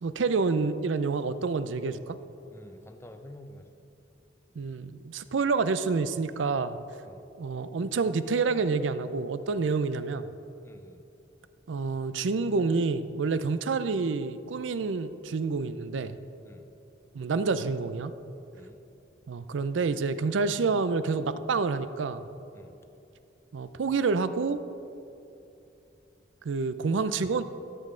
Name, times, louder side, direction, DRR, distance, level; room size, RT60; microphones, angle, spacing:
voice 1, 0.0-2.2 4.6-6.8 7.4-10.3 11.7-16.2 17.1-18.1 19.3-22.2 23.5-24.6 26.4-27.4, right 4 dB, 85° right, 13 dB, 0.5 m, -28 dB
voice 2, 2.5-3.7 7.0-7.3 10.6-11.0 16.4-16.7 18.5-18.8 22.5-22.8, left 1 dB, 15° left, 7 dB, 0.6 m, -49 dB
14.0 x 7.6 x 3.8 m, 2.8 s
head